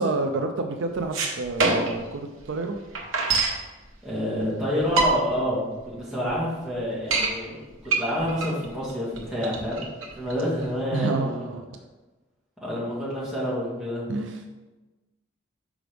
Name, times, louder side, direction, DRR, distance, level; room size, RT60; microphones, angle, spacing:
voice 1, 0.0-2.8 10.9-11.7 14.1-14.4, right 3 dB, 60° right, 5 dB, 0.4 m, -28 dB
sound 1, 1.0-2.1 2.4-2.5 2.7-3.6 4.4-4.5 4.8-5.4 5.9-6.0 6.3-6.4 6.8-7.3 7.8-10.7, right 3 dB, 80° right, 1.0 m, -24 dB
voice 2, 4.0-9.8 10.2-11.5 12.6-14.1, equal, 5° right, -8 dB, 1.9 m, -28 dB
6.2 x 4.9 x 3.4 m, 1.2 s
head